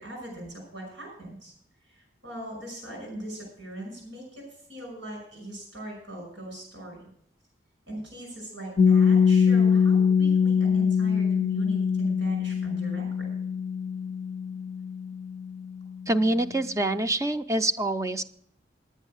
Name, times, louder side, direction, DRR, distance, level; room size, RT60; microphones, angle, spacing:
voice 1, 0.0-1.5 1.8-7.1 7.9-13.3, right 1 dB, 90° right, 0 dB, 5.9 m, -40 dB
Piano, 8.8-16.1, left 6 dB, 40° left, 0.4 m, -23 dB
voice 2, 16.1-18.2, right 1 dB, 20° right, 10 dB, 0.5 m, -25 dB
10.5 x 9.1 x 6.3 m, 0.65 s
head